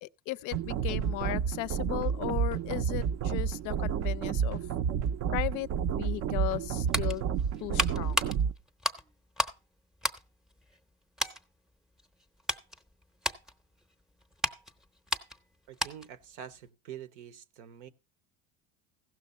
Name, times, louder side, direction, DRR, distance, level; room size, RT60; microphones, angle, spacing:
voice 1, 0.0-4.7 5.3-7.3 7.6-8.2, left 17 dB, 60° left, 0.5 m, -36 dB
sound 1, 0.5-8.5, right 7 dB, 45° right, 0.5 m, -30 dB
sound 2, 6.5-9.6 9.9-10.9 11.2-11.4 12.0-16.2 16.5-16.7, left 1 dB, ahead, 0.6 m, -34 dB
voice 2, 15.7-17.9, right 10 dB, 85° right, 0.9 m, -46 dB
15.5 x 6.2 x 4.1 m
supercardioid pair, 115°, 36 cm